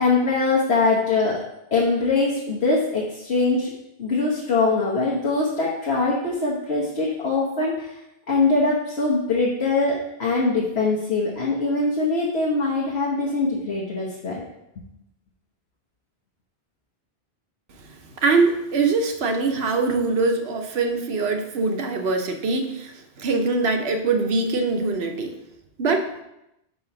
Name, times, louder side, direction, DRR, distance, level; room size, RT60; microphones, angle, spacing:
voice 1, 0.0-1.4 1.7-3.7 4.0-7.9 8.3-14.4, left 3 dB, 80° left, -4 dB, 1.3 m, -22 dB
voice 2, 17.9-25.3 25.8-26.1, right 3 dB, 75° right, 4 dB, 1.0 m, -23 dB
5.7 x 4.1 x 5.8 m, 0.86 s
omnidirectional pair, 1.1 m